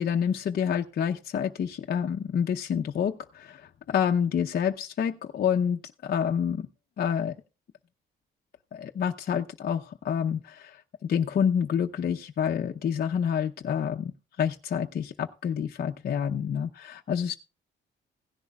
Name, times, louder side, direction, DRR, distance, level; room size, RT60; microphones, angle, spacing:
voice 1, 0.0-6.7 7.0-7.3 8.7-14.1 14.4-17.3, left 8 dB, 50° left, 2 dB, 0.7 m, -28 dB
16.5 x 10.5 x 2.3 m, 0.32 s
cardioid pair, 90°, 20 cm